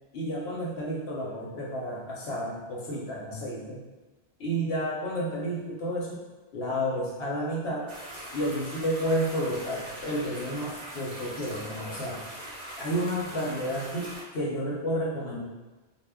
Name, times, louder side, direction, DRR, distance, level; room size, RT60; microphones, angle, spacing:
voice 1, 0.1-3.8 4.4-6.2 6.5-7.9 8.3-12.2 12.8-15.4, equal, 75° left, -4 dB, 1.0 m, -31 dB
sound 1, 7.9-14.2, right 1 dB, 30° right, 0.7 m, -41 dB
2.1 x 2.1 x 3.5 m, 1.2 s
omnidirectional pair, 1.1 m